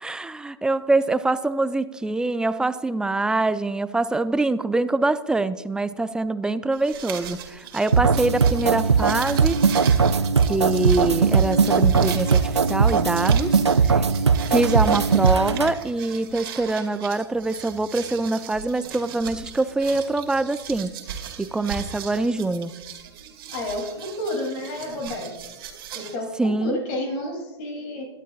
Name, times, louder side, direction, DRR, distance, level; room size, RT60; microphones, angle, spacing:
voice 1, 0.0-9.6 10.5-14.0 14.5-20.9 21.4-22.7 26.4-26.8, right 2 dB, 5° right, 14 dB, 0.4 m, -24 dB
sound 1, 6.7-26.1, right 8 dB, 60° right, 2.1 m, -38 dB
sound 2, 7.9-15.7, right 5 dB, 85° right, 0.5 m, -19 dB
voice 2, 23.5-25.3 25.9-28.1, left 1 dB, 45° left, 2 dB, 3.0 m, -30 dB
22.5 x 11.5 x 2.4 m, 1.2 s
figure-of-eight pair, 100°, 14 cm